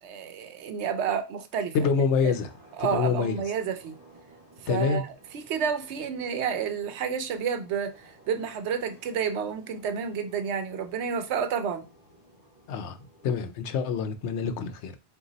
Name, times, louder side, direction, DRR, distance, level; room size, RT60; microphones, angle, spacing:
voice 1, 0.0-1.9 2.2-2.3 2.8-4.0 4.6-11.8, right 7 dB, 80° right, 0.9 m, -30 dB
voice 2, 1.7-2.5 2.9-3.4 4.7-5.0 12.7-13.0 13.2-15.0, left 6 dB, 85° left, 0.9 m, -26 dB
sound 1, 2.3-13.5, right 1 dB, 20° right, 2.2 m, -56 dB
3.9 x 2.6 x 3.9 m
omnidirectional pair, 1.1 m